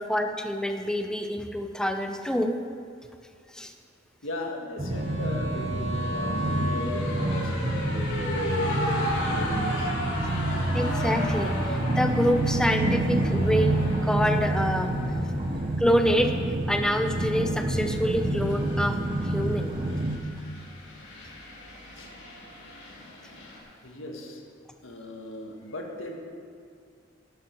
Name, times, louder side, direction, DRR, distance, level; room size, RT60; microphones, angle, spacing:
voice 1, 0.0-2.6 3.5-3.7 10.7-14.9 15.8-16.3 16.7-19.0 19.2-19.7, equal, 5° left, 5 dB, 0.7 m, -26 dB
voice 2, 4.2-9.9 21.9-22.1 23.6-24.4 24.8-26.2, left 1 dB, 80° left, 1 dB, 1.7 m, -39 dB
sound 1, 4.8-20.2, right 1 dB, 25° right, 0.9 m, -28 dB
sound 2, 4.9-23.6, left 1 dB, 65° left, 2.8 m, -35 dB
12.5 x 11.0 x 4.6 m, 2.2 s
head